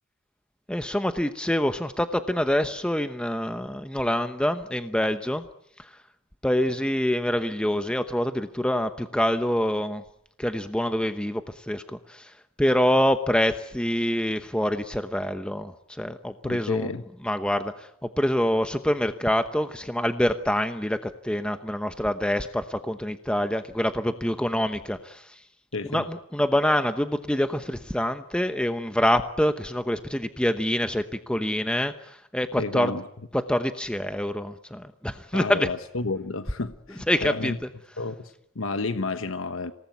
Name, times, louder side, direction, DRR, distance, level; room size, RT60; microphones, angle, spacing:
voice 1, 0.7-5.5 5.8-6.0 6.4-10.0 10.4-16.9 17.2-25.4 25.8-32.9 33.3-35.7 37.1-37.5, equal, 5° left, 0.9 m, -26 dB
voice 2, 16.4-17.0 25.7-26.1 32.6-33.0 35.3-37.6 38.0-39.7, left 3 dB, 70° left, 1.2 m, -31 dB
27.5 x 19.0 x 9.4 m
head